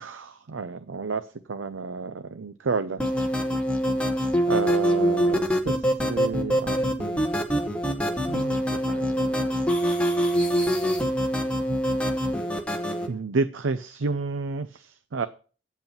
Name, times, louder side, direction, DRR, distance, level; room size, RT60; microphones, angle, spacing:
voice 1, 0.0-3.0 3.4-3.5 4.5-5.8 6.1-7.4 7.9-9.6 13.1-15.3, right 4 dB, 80° right, 12 dB, 0.6 m, -31 dB
sound 1, 3.0-13.1, equal, 5° left, 1.1 m, -24 dB
9.0 x 7.9 x 5.8 m, 0.40 s
head